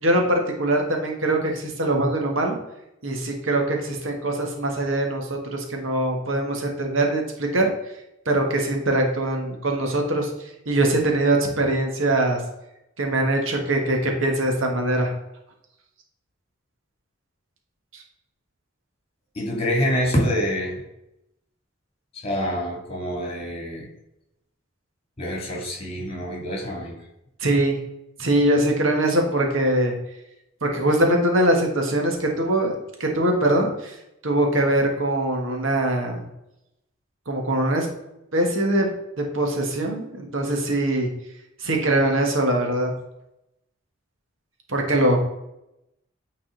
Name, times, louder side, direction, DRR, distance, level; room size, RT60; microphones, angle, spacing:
voice 1, 0.0-2.6 3.0-7.7 8.2-12.4 13.0-15.1 17.9-18.0 27.4-27.8 28.2-29.9 30.6-34.0 34.2-36.3 37.3-37.9 38.3-38.9 39.2-41.1 41.6-42.9 44.7-45.2, right 1 dB, 80° right, 2 dB, 1.4 m, -22 dB
voice 2, 19.3-20.8 22.1-23.9 25.2-27.0, equal, 30° left, -1 dB, 2.4 m, -26 dB
9.1 x 4.0 x 3.8 m, 0.86 s
head